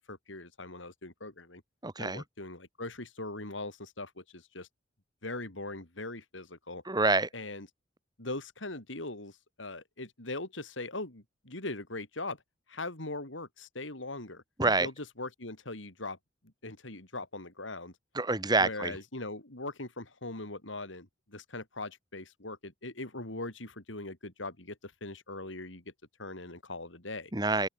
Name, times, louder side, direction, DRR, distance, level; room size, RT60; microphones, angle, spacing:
voice 1, 0.1-1.6 2.0-4.7 5.2-6.8 7.3-7.7 8.2-12.4 12.7-14.4 14.8-16.2 16.6-17.9 18.6-25.8 26.2-27.3, left 2 dB, 80° left, 4.5 m, -40 dB
voice 2, 1.8-2.2 6.9-7.3 14.6-14.9 18.1-18.9 27.3-27.7, right 3 dB, 20° right, 2.7 m, -27 dB
open air
head